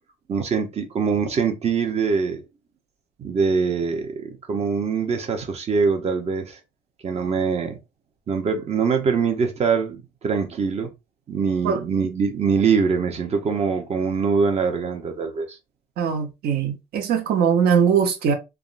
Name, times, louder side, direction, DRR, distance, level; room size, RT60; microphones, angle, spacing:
voice 1, 0.3-2.4 3.2-6.6 7.0-7.8 8.3-10.9 11.3-15.6, right 5 dB, 40° right, 0.8 m, -23 dB
voice 2, 16.0-18.3, right 7 dB, 65° right, 0.9 m, -21 dB
3.5 x 2.1 x 2.5 m
cardioid pair, 110°, 17 cm